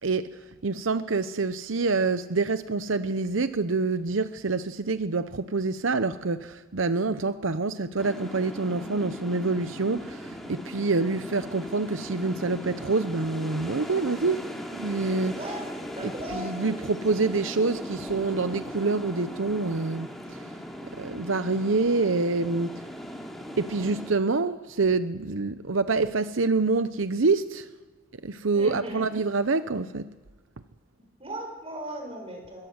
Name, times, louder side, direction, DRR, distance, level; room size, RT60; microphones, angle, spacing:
voice 1, 0.0-14.5 14.8-15.4 16.0-20.5 21.0-22.9 23.6-27.7 28.2-30.1, right 3 dB, 80° right, 0.8 m, -26 dB
sound 1, 8.0-24.1, equal, ahead, 3.3 m, -39 dB
voice 2, 15.4-15.7 15.9-16.6 28.5-29.1 31.2-32.7, right 1 dB, 30° right, 6.3 m, -37 dB
28.0 x 23.5 x 8.1 m
head